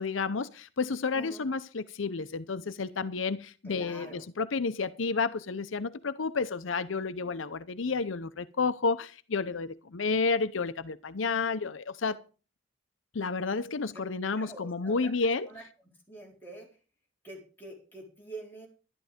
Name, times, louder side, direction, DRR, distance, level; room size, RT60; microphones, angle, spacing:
voice 1, 0.0-12.2 13.1-15.5, left 4 dB, 80° left, 0.7 m, -31 dB
voice 2, 1.1-1.5 3.6-4.2 14.3-15.1 15.5-15.6 16.1-16.7 17.2-18.7, right 1 dB, 10° left, 4.5 m, -45 dB
12.0 x 11.5 x 5.1 m
head